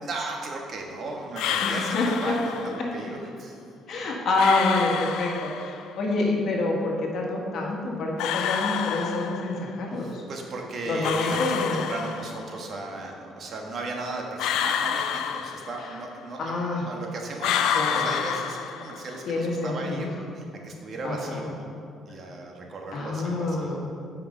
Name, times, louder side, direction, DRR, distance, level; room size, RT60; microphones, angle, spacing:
voice 1, 0.0-3.6 10.0-16.6 16.8-21.7 22.1-23.8, right 2 dB, 50° right, 1 dB, 1.3 m, -36 dB
sound 1, 1.4-2.8 4.4-5.9 8.2-9.7 11.0-12.6 14.4-16.1 17.4-19.2, left 8 dB, 85° left, 0.4 m, -29 dB
voice 2, 1.6-2.3 3.9-10.2 10.8-11.8 16.4-16.9 17.7-18.1 19.2-20.1 21.0-21.5 22.9-23.8, left 2 dB, 60° left, -1 dB, 1.6 m, -27 dB
8.5 x 5.2 x 5.4 m, 2.4 s
cardioid pair, 110°, 0 cm